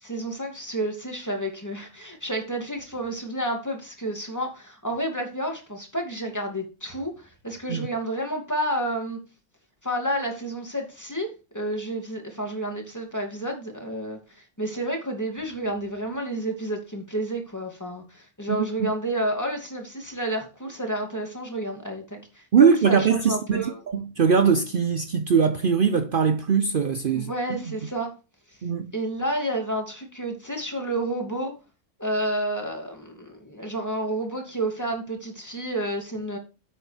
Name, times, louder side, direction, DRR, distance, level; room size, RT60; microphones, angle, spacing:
voice 1, 0.0-9.2 9.8-23.8 27.1-28.1 28.9-31.5 32.0-36.4, right 1 dB, 15° left, 2.6 m, -30 dB
voice 2, 22.5-27.6 28.6-28.8, right 6 dB, 50° right, 0.8 m, -21 dB
10.5 x 8.3 x 3.4 m
omnidirectional pair, 1.2 m